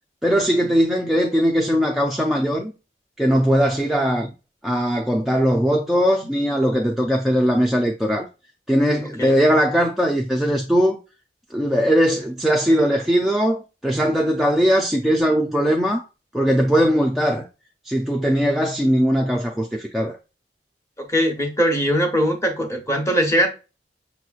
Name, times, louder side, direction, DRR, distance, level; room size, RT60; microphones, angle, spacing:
voice 1, 0.2-2.7 3.2-4.3 4.6-8.3 8.7-11.0 11.5-16.0 16.3-17.5 17.9-20.2, equal, ahead, 0.4 m, -20 dB
voice 2, 21.0-23.5, equal, 15° left, 1.0 m, -21 dB
6.2 x 2.9 x 2.4 m
head